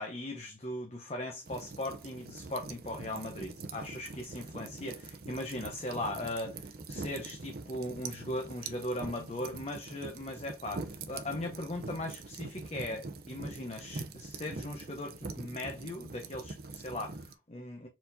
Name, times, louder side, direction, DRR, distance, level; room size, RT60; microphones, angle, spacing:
voice 1, 0.0-17.9, left 1 dB, 35° left, 0.8 m, -39 dB
sound 1, 1.5-17.3, right 3 dB, 50° right, 0.6 m, -44 dB
4.4 x 4.1 x 2.6 m
head